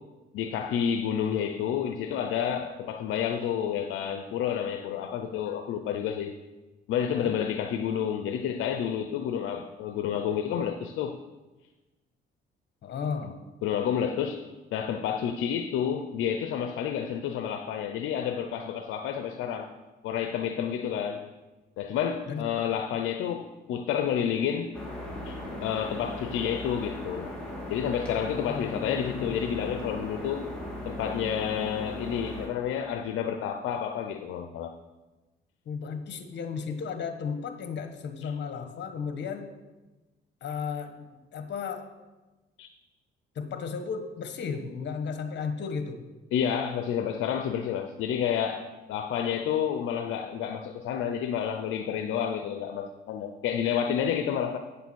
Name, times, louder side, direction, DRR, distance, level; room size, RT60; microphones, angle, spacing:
voice 1, 0.3-6.4 6.9-11.2 13.6-14.4 14.7-19.7 20.0-21.2 21.8-24.7 25.3-27.3 27.7-30.5 30.9-34.7 38.2-38.3 42.6-42.7 46.3-54.6, left 8 dB, 85° left, 6 dB, 0.6 m, -30 dB
voice 2, 7.0-7.3 12.8-13.4 22.3-22.4 28.3-29.4 35.6-39.5 40.4-41.8 43.3-46.0, left 6 dB, 65° left, 7 dB, 1.3 m, -34 dB
sound 1, 24.7-32.5, left 1 dB, 5° left, 2.7 m, -38 dB
8.9 x 6.9 x 6.2 m, 1.1 s
cardioid pair, 90°, 20 cm